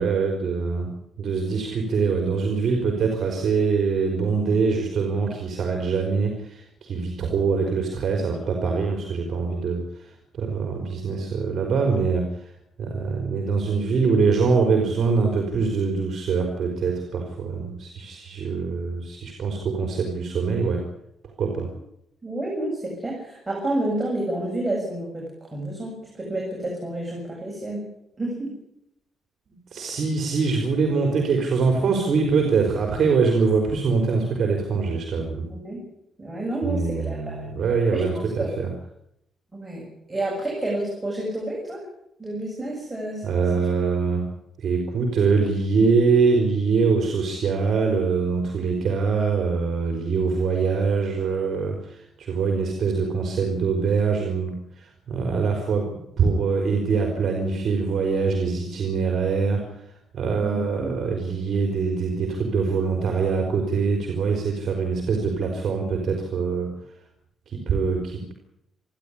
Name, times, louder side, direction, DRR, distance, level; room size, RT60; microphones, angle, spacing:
voice 1, 0.0-12.3 12.8-20.9 21.2-21.7 29.7-35.5 36.6-38.7 43.2-44.3 44.6-55.9 56.2-59.6 60.1-66.7 67.5-68.3, right 5 dB, 50° right, 3 dB, 4.2 m, -23 dB
voice 2, 22.2-27.8 28.2-28.6 35.5-35.8 36.2-37.5 37.9-38.1 38.3-38.6 39.5-41.8 42.2-43.2 60.4-60.9, right 1 dB, 15° right, -2 dB, 7.3 m, -29 dB
28.5 x 11.5 x 10.0 m, 0.80 s
cardioid pair, 135°, 0 cm